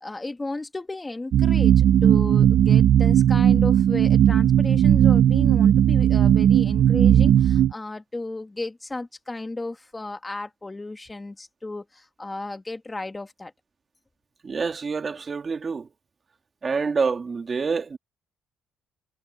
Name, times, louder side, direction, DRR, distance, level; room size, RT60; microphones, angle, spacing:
voice 1, 0.0-13.5, left 2 dB, 15° left, 1.6 m, -34 dB
sound 1, 1.3-7.7, right 10 dB, 60° right, 0.7 m, -17 dB
voice 2, 14.4-15.9 16.6-18.0, right 5 dB, 30° right, 2.7 m, -27 dB
cardioid pair, 110°, 0 cm